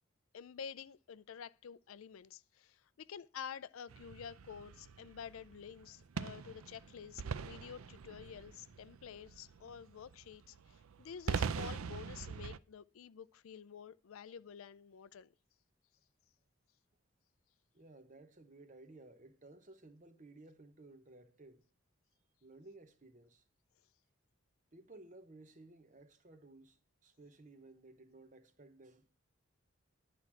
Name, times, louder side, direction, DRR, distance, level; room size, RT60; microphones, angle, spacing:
voice 1, 0.3-15.3, left 7 dB, 75° left, 0.4 m, -50 dB
sound 1, 3.9-12.6, right 6 dB, 85° right, 0.5 m, -43 dB
voice 2, 17.7-21.7 22.4-23.4 24.7-29.2, right 2 dB, 35° right, 0.9 m, -57 dB
10.5 x 4.6 x 7.3 m
head